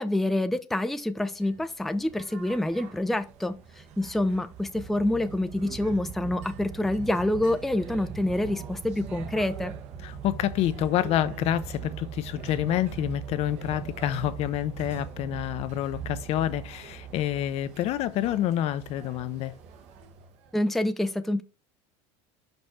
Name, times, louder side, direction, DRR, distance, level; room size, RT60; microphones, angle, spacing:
voice 1, 0.0-3.6 4.0-9.7 20.5-21.4, left 1 dB, ahead, 0.5 m, -27 dB
sound 1, 1.3-20.5, right 7 dB, 55° right, 1.2 m, -41 dB
voice 2, 10.0-19.5, left 12 dB, 50° left, 0.6 m, -28 dB
5.3 x 5.2 x 4.4 m
supercardioid pair, 115°, 13 cm